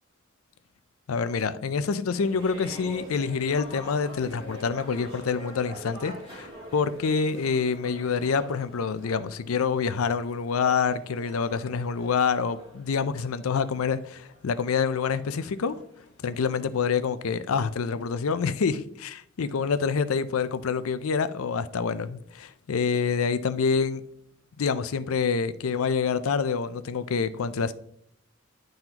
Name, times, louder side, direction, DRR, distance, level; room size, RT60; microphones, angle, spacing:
voice 1, 1.1-15.8 16.2-19.1 19.4-24.0 24.6-27.7, left 5 dB, 90° left, 0.5 m, -27 dB
sound 1, 2.1-16.5, equal, 25° right, 2.9 m, -45 dB
10.5 x 3.9 x 2.9 m
head